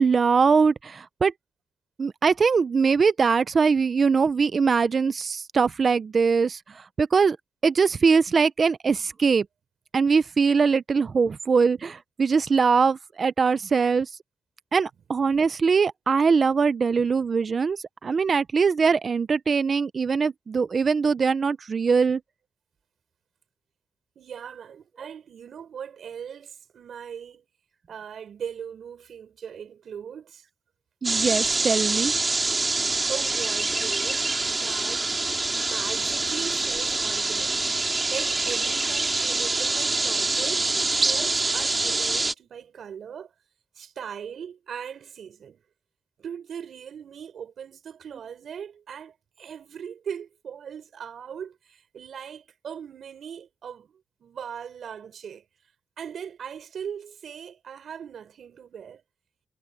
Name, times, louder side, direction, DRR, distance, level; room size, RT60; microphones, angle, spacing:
voice 1, 0.0-1.3 2.0-7.4 7.6-9.5 9.9-14.1 14.7-22.2 31.0-32.1, right 5 dB, 40° right, 0.5 m, -22 dB
voice 2, 24.1-27.5 27.9-30.4 33.1-43.3 43.7-45.6 46.2-55.4 56.0-59.0, right 8 dB, 65° right, 6.5 m, -39 dB
sound 1, 31.0-42.3, right 3 dB, 25° right, 2.2 m, -25 dB
wide cardioid pair, 145°, 0 cm